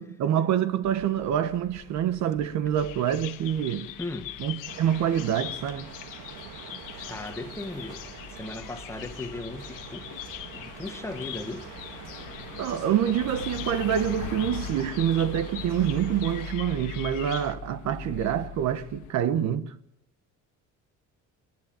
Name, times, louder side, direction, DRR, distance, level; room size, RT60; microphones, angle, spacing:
voice 1, 0.0-3.9 4.4-5.9 12.6-19.7, right 10 dB, 60° right, 1.3 m, -26 dB
sound 1, 0.8-19.1, left 7 dB, 65° left, 1.4 m, -43 dB
Bird vocalization bird call bird song, 2.8-17.5, left 14 dB, 85° left, 1.3 m, -43 dB
voice 2, 4.0-4.3 6.9-8.0 8.3-10.1 10.5-11.7, left 2 dB, 10° left, 1.3 m, -37 dB
sound 2, 4.7-16.5, right 8 dB, 80° right, 2.3 m, -45 dB
29.0 x 11.0 x 8.9 m
cardioid pair, 170°, 31 cm